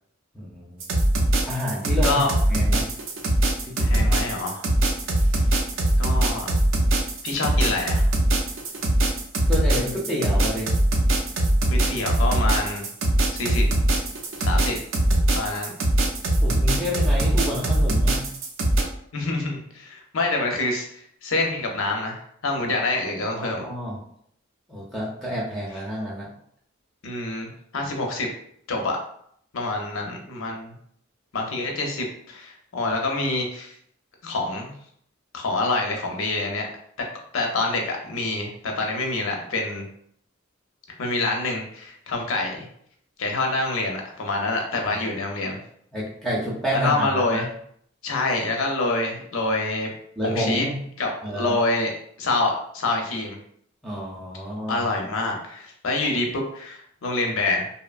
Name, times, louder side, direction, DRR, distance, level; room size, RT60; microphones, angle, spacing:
voice 1, 0.3-0.9 1.5-2.2 2.5-2.9 3.7-4.1 9.5-10.7 16.4-18.3 23.4-24.0 24.7-26.3 44.9-45.0 45.9-47.5 50.2-50.7 51.2-51.6 53.8-54.8, equal, ahead, -6 dB, 0.4 m, -29 dB
sound 1, 0.8-18.8, right 1 dB, 70° right, 0.5 m, -21 dB
voice 2, 3.8-4.7 6.0-6.5 7.2-8.1 11.7-12.8 13.3-13.6 14.4-14.8 15.4-15.7 19.1-23.6 27.0-28.3 28.7-29.0 29.5-30.7 31.3-33.7 34.2-34.7 35.3-36.7 37.3-39.8 41.0-42.7 43.2-45.6 46.7-47.5 48.0-49.9 50.2-50.7 51.0-51.9 52.2-53.4 54.7-57.7, left 2 dB, 85° left, 1 dB, 0.6 m, -26 dB
2.8 x 2.1 x 2.4 m, 0.67 s
head